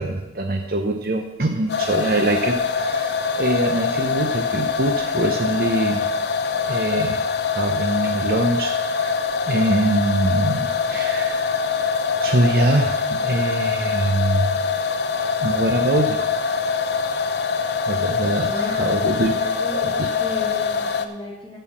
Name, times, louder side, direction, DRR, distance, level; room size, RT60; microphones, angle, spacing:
voice 1, 0.0-6.0 6.7-7.2 7.5-9.1 9.5-11.5 12.2-14.6 15.4-16.3 17.9-18.5 18.8-19.3 19.7-20.1, right 2 dB, 55° right, 3 dB, 0.8 m, -23 dB
sound 1, 1.7-21.1, left 5 dB, 65° left, 0.7 m, -23 dB
voice 2, 18.4-21.6, left 1 dB, 5° left, -8 dB, 1.8 m, -35 dB
11.0 x 5.6 x 7.4 m, 0.99 s
head